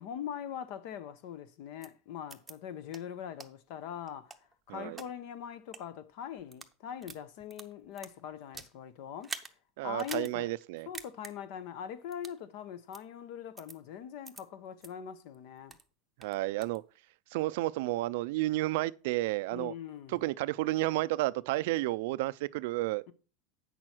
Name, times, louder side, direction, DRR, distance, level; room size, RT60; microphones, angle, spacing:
voice 1, 0.0-4.3 4.7-9.3 9.8-10.5 10.9-15.8 19.5-20.2 23.1-23.2, left 9 dB, 60° left, 0.9 m, -42 dB
sound 1, 1.8-1.9 2.3-2.5 2.9-3.0 3.4-3.5 4.1-5.1 5.6-5.8 6.4-6.7 7.0-8.7 9.2-9.5 10.0-10.3 10.6-10.7 10.9-11.3 12.1-12.4 12.9-13.0 13.6-13.8 14.2-14.4 14.8-14.9 15.3-15.9 16.2-16.8, right 3 dB, 10° right, 0.8 m, -45 dB
voice 2, 4.7-5.0 9.8-10.9 16.2-16.8 17.3-19.7 20.1-23.0, right 18 dB, 70° right, 0.4 m, -31 dB
8.4 x 6.2 x 4.5 m
supercardioid pair, 135°, 0 cm